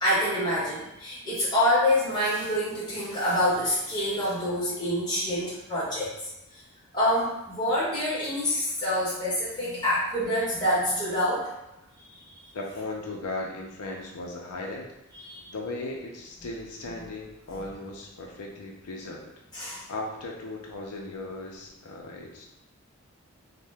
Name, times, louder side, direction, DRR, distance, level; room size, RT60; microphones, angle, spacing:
voice 1, 0.0-6.1 6.9-11.5 12.0-12.1 15.2-15.4 19.5-19.8, left 1 dB, 20° left, -8 dB, 1.1 m, -26 dB
voice 2, 12.5-14.9 15.5-19.2 19.9-22.5, left 2 dB, 85° left, 0 dB, 0.5 m, -37 dB
2.7 x 2.1 x 3.2 m, 0.88 s
head